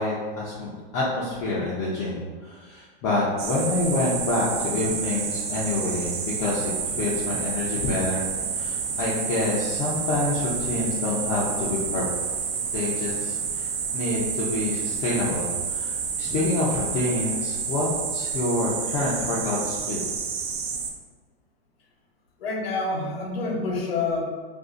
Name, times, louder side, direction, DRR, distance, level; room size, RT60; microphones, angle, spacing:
voice 1, 0.0-12.1 12.7-20.0, left 2 dB, 25° left, -7 dB, 0.4 m, -27 dB
sound 1, 3.4-20.9, right 6 dB, 85° right, 0.6 m, -29 dB
voice 2, 22.4-24.2, left 3 dB, 90° left, 0 dB, 0.9 m, -27 dB
2.5 x 2.3 x 3.7 m, 1.5 s
supercardioid pair, 150°, 29 cm